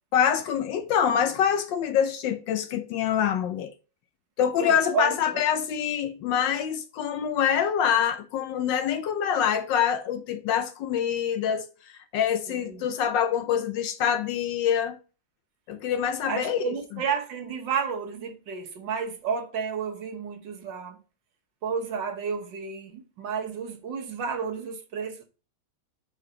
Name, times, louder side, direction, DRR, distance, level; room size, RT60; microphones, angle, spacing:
voice 1, 0.1-3.7 4.4-15.0 15.7-16.7, left 8 dB, 70° left, 1.2 m, -25 dB
voice 2, 4.6-5.5 12.5-12.9 16.3-21.0 21.6-25.2, right 6 dB, 65° right, 1.7 m, -31 dB
5.0 x 4.8 x 5.5 m
omnidirectional pair, 2.2 m